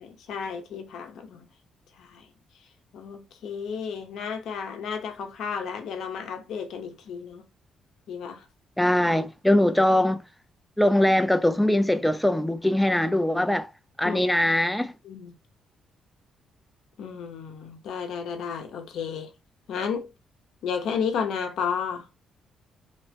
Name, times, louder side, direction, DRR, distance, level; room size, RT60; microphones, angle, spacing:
voice 1, 0.0-1.5 2.0-2.3 2.9-7.4 8.1-8.4 9.5-9.6 14.0-14.2 15.0-15.3 17.0-19.3 19.7-20.1 20.6-22.1, left 6 dB, 75° left, 0.7 m, -32 dB
voice 2, 8.8-10.2 10.8-13.7 14.0-14.9, left 1 dB, 5° left, 0.3 m, -22 dB
2.9 x 2.1 x 2.8 m
cardioid pair, 90°, 0 cm